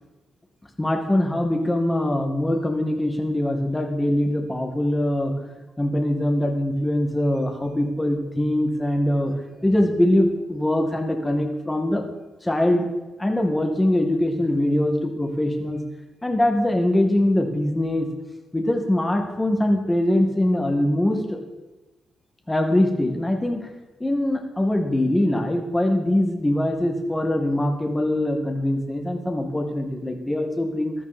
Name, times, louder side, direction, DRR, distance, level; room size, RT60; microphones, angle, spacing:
voice 1, 0.8-5.3 5.8-12.0 12.4-12.9 13.2-15.8 16.2-18.1 18.5-21.4 22.5-23.6 24.0-30.9, left 1 dB, 15° left, 4 dB, 2.1 m, -22 dB
14.5 x 12.5 x 4.4 m, 1.0 s
cardioid pair, 90°, 0 cm